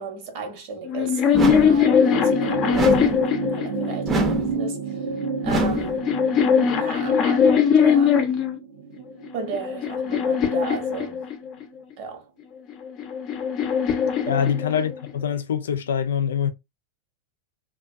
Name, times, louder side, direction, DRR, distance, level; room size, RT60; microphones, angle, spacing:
voice 1, 0.0-5.2 5.4-6.1 6.7-8.3 9.3-11.3 12.0-12.3 14.2-14.5, right 5 dB, 55° right, 1.1 m, -35 dB
sound 1, 0.9-4.3 5.2-8.6 9.2-11.7 12.7-15.1, left 7 dB, 40° left, 0.6 m, -21 dB
sound 2, 1.3-1.9 2.7-3.3 4.1-4.6 5.4-6.0, right 1 dB, 25° right, 0.7 m, -24 dB
sound 3, 1.7-10.4 11.6-11.7, right 4 dB, 85° right, 0.8 m, -31 dB
voice 2, 14.3-16.5, left 8 dB, 85° left, 0.4 m, -24 dB
2.4 x 2.4 x 2.4 m
hypercardioid pair, 110°, 0 cm